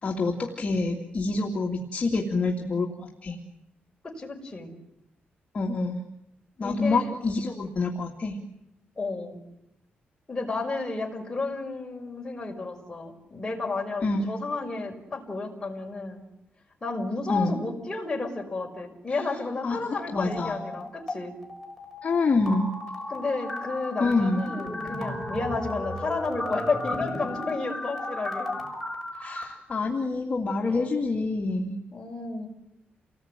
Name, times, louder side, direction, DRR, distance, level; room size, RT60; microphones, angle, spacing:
voice 1, 0.0-3.4 5.5-6.0 6.6-8.4 14.0-14.3 17.3-17.6 19.1-19.2 19.6-19.8 20.1-20.6 22.0-22.7 24.0-24.4 29.1-31.7, left 3 dB, 35° left, 0 dB, 2.7 m, -27 dB
voice 2, 4.0-4.7 6.6-7.2 9.0-9.4 10.3-16.2 16.8-21.3 23.1-28.5 30.7-31.0 31.9-32.5, left 3 dB, 20° left, 0 dB, 5.7 m, -32 dB
sound 1, 20.2-21.2 21.4-29.4, left 1 dB, 5° right, 6.6 m, -34 dB
29.5 x 20.0 x 9.2 m, 0.84 s
wide cardioid pair, 165°, 4 cm